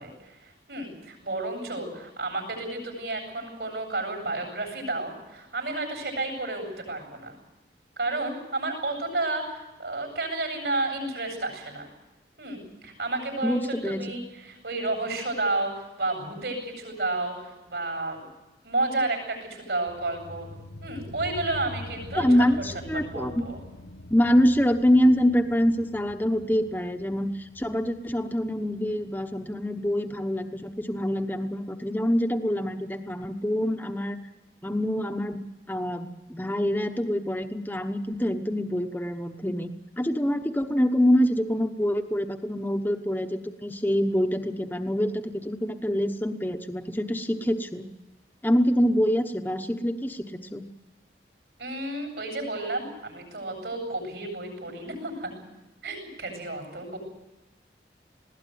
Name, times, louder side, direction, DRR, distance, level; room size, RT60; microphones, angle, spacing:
voice 1, 0.0-7.4 8.0-11.9 12.4-18.2 18.6-20.5 20.8-22.4 22.9-23.6 51.6-55.3 55.8-57.0, right 2 dB, 70° right, 3 dB, 8.0 m, -31 dB
voice 2, 13.4-14.1 22.1-23.4 24.1-34.2 34.6-39.7 40.0-47.9 48.4-50.6, equal, 10° left, 5 dB, 1.0 m, -25 dB
sound 1, 19.9-31.0, left 1 dB, 85° left, 1.3 m, -44 dB
20.5 x 16.5 x 9.4 m, 1.1 s
head